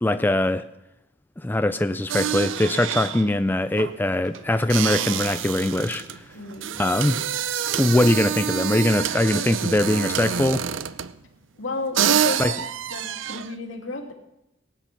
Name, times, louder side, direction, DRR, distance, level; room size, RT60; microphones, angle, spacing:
voice 1, 0.0-0.6 1.4-6.2 6.8-7.2 7.8-10.6 12.4-12.5, left 1 dB, 10° left, 10 dB, 0.4 m, -22 dB
sound 1, 2.1-11.2 11.7-11.8 11.9-13.6, right 9 dB, 70° right, 0.6 m, -27 dB
voice 2, 6.3-6.8 11.6-12.6 12.9-14.1, left 2 dB, 75° left, 2 dB, 2.5 m, -32 dB
18.0 x 9.1 x 5.9 m, 0.86 s
head